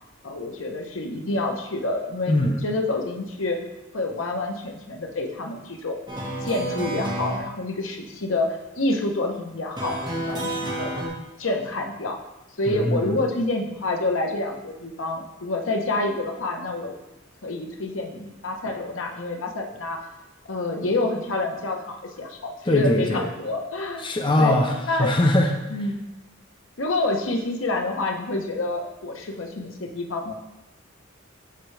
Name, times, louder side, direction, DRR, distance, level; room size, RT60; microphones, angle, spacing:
voice 1, 0.2-3.6 3.9-6.0 6.4-10.9 11.4-12.2 12.6-16.9 17.4-20.0 20.5-24.0 24.4-25.1 25.7-26.0 26.8-30.4, left 2 dB, 80° left, 2 dB, 1.1 m, -28 dB
voice 2, 2.3-2.6 12.7-13.1 22.7-23.3 24.0-24.7 25.0-25.5, left 1 dB, 25° left, 2 dB, 0.7 m, -21 dB
sound 1, 6.1-7.4 9.8-11.1, right 1 dB, 20° right, 1.7 m, -29 dB
13.5 x 4.7 x 3.4 m, 0.97 s
head